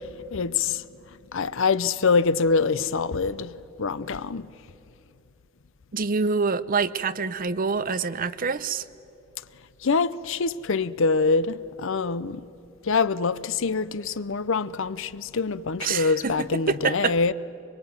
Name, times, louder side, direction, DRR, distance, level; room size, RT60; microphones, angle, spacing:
voice 1, 0.3-0.8 1.3-3.5 3.8-4.4 9.8-12.4 12.9-17.3, left 4 dB, 65° left, 0.7 m, -24 dB
voice 2, 5.9-8.8 15.8-17.2, right 4 dB, 45° right, 0.7 m, -26 dB
24.5 x 23.0 x 9.6 m
head